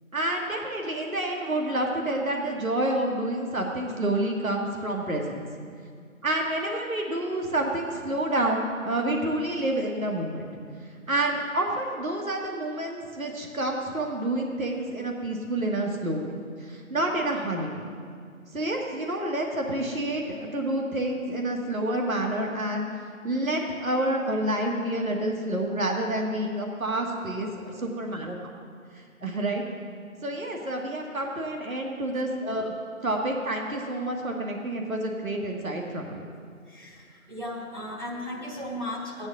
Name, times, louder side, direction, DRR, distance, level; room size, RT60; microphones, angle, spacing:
voice 1, 0.1-5.4 6.2-10.5 11.1-17.9 18.5-22.9 23.2-28.4 29.0-29.6 30.2-32.7 33.0-36.3, right 1 dB, 70° right, 1 dB, 1.7 m, -28 dB
voice 2, 36.7-39.3, left 1 dB, 35° right, -4 dB, 1.3 m, -36 dB
15.0 x 9.5 x 3.8 m, 2.2 s
figure-of-eight pair, 170°, 42 cm